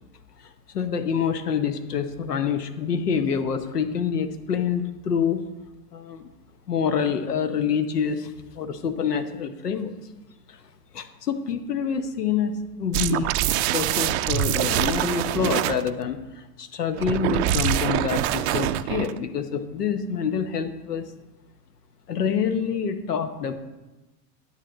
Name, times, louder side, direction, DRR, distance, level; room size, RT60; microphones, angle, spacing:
voice 1, 0.7-5.4 5.9-6.3 6.7-9.9 10.5-10.6 10.9-12.5 12.8-13.3 13.7-16.2 16.6-21.1 22.1-23.5, left 7 dB, 80° left, 8 dB, 1.0 m, -26 dB
sound 1, 12.9-15.9 17.0-19.2, right 13 dB, 45° right, 0.5 m, -24 dB
10.5 x 8.2 x 3.9 m, 1.1 s
figure-of-eight pair, 80°, 46 cm